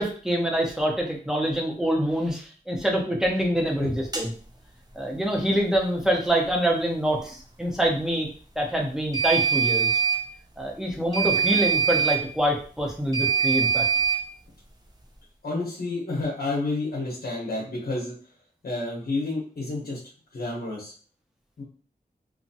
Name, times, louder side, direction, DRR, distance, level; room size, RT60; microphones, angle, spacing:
voice 1, 0.0-4.3 4.9-8.3 8.6-10.0 10.6-13.9, equal, 5° right, -1 dB, 0.9 m, -25 dB
sound 1, 4.1-4.3 9.1-10.2 11.1-12.2 13.1-14.2, right 6 dB, 25° right, 0.6 m, -23 dB
voice 2, 15.4-18.1 18.6-20.0 20.3-20.9 21.6-21.7, left 2 dB, 75° left, -4 dB, 1.0 m, -30 dB
2.9 x 2.4 x 2.7 m, 0.42 s
wide cardioid pair, 60°, 16 cm